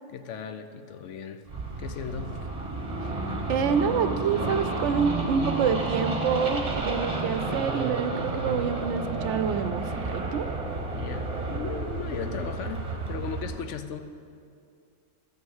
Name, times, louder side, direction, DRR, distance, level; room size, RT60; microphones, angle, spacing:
voice 1, 0.1-1.4 1.8-2.4 10.9-14.1, left 7 dB, 70° left, 9 dB, 0.9 m, -37 dB
sound 1, 1.5-13.5, right 2 dB, 30° right, 1.1 m, -31 dB
voice 2, 3.5-10.5, right 6 dB, 70° right, 9 dB, 0.8 m, -27 dB
12.0 x 6.3 x 7.1 m, 2.4 s
omnidirectional pair, 1.3 m